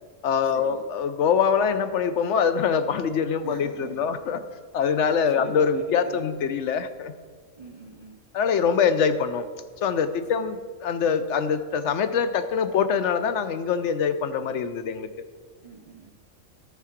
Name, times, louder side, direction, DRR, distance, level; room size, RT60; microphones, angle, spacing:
voice 1, 0.2-4.4 4.7-7.1 8.3-9.4 9.8-15.1, left 6 dB, 70° left, 10 dB, 0.9 m, -24 dB
voice 2, 3.4-4.2 4.8-5.1 5.3-6.3 7.6-8.2 10.3-10.5 15.6-16.1, right 3 dB, 40° right, 2 dB, 0.5 m, -43 dB
12.5 x 4.8 x 5.8 m, 1.6 s
omnidirectional pair, 1.3 m